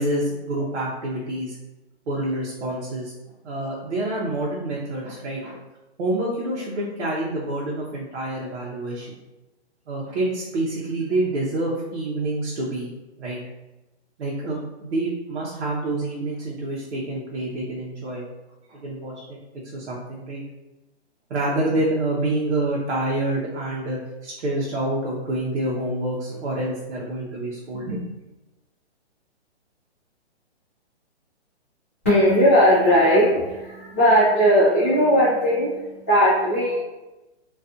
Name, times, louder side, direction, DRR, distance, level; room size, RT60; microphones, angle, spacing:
voice 1, 0.0-1.6 2.1-3.1 3.4-5.6 6.0-9.2 9.9-12.9 13.2-13.4 14.2-18.2 18.7-19.4 19.7-20.4 21.3-28.0, right 1 dB, 75° right, -4 dB, 0.7 m, -27 dB
voice 2, 32.0-36.8, equal, 15° left, -15 dB, 0.3 m, -18 dB
2.5 x 2.3 x 2.4 m, 1.0 s
hypercardioid pair, 155°, 34 cm